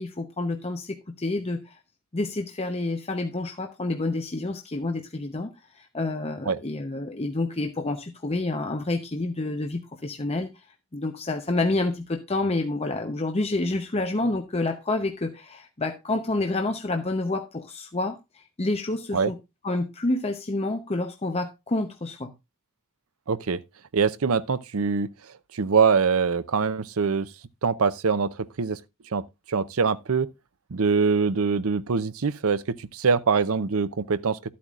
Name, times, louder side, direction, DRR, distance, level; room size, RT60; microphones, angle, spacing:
voice 1, 0.0-1.8 2.1-10.5 10.9-19.4 19.6-22.3, left 2 dB, 30° left, 0.8 m, -28 dB
voice 2, 23.3-23.6 23.9-25.1 25.5-27.3 27.6-28.8 29.1-30.3 30.7-34.5, right 5 dB, 70° right, 0.6 m, -24 dB
12.5 x 8.5 x 2.4 m
head